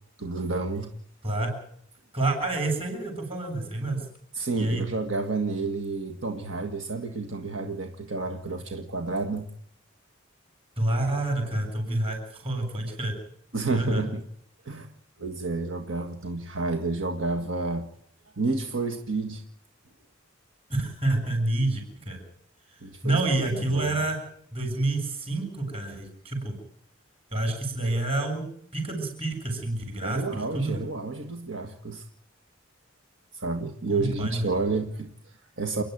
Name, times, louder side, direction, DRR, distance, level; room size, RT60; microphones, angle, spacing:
voice 1, 0.2-0.9 4.3-9.5 13.5-14.2 14.6-14.9 15.2-17.9 18.4-19.4 22.8-23.2 23.5-23.9 30.0-32.0 33.3-35.8, right 3 dB, 70° right, 4 dB, 1.9 m, -30 dB
voice 2, 2.1-4.1 4.6-4.8 10.8-13.1 13.7-14.1 20.7-22.2 23.0-24.2 24.5-26.6 27.3-28.4 28.7-30.8 33.9-34.5, right 2 dB, 30° right, 4 dB, 7.0 m, -28 dB
29.0 x 10.5 x 9.3 m, 0.64 s
head